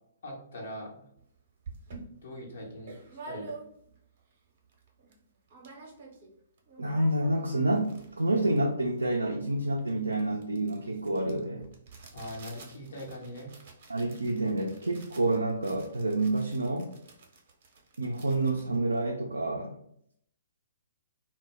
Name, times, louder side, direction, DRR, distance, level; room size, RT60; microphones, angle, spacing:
voice 1, 0.2-1.1 2.1-3.0 3.2-3.5 12.1-13.5, equal, 60° left, -2 dB, 0.9 m, -41 dB
sound 1, 1.2-1.3 1.6-4.0 4.4-4.5 4.7-5.2 5.5-6.3 6.6-19.6, right 4 dB, 50° right, 0.7 m, -49 dB
voice 2, 6.8-11.7 13.9-16.9 18.0-19.8, right 2 dB, 80° right, 1 dB, 0.3 m, -28 dB
2.1 x 2.0 x 3.5 m, 0.70 s
figure-of-eight pair, 120°, 0 cm